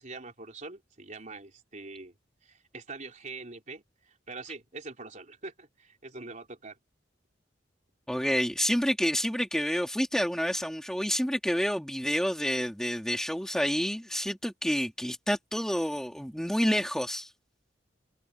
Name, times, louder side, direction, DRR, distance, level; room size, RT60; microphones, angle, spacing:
voice 1, 0.0-2.1 2.4-6.8, right 3 dB, 40° right, 3.9 m, -44 dB
voice 2, 8.1-17.3, equal, 5° left, 2.1 m, -29 dB
head